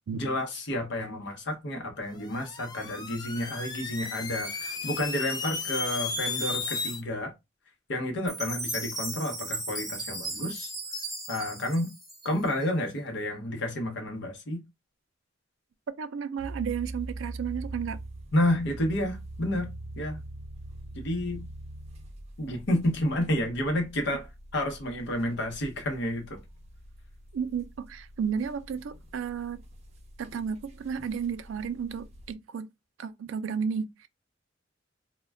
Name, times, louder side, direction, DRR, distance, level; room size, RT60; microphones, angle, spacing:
voice 1, 0.1-7.3 7.9-10.7 11.3-11.9 12.2-14.6 18.3-20.2 20.9-21.5 22.4-24.3 24.5-26.4, left 1 dB, 65° left, 0.8 m, -30 dB
sound 1, 2.2-7.0, left 3 dB, 20° left, 0.4 m, -34 dB
Chime, 8.3-12.6, right 1 dB, ahead, 0.8 m, -36 dB
voice 2, 16.0-18.0 27.3-29.6 30.2-32.7 33.0-34.1, right 6 dB, 90° right, 0.4 m, -33 dB
sound 2, 16.4-32.3, right 2 dB, 35° right, 0.6 m, -43 dB
2.2 x 2.2 x 3.3 m
head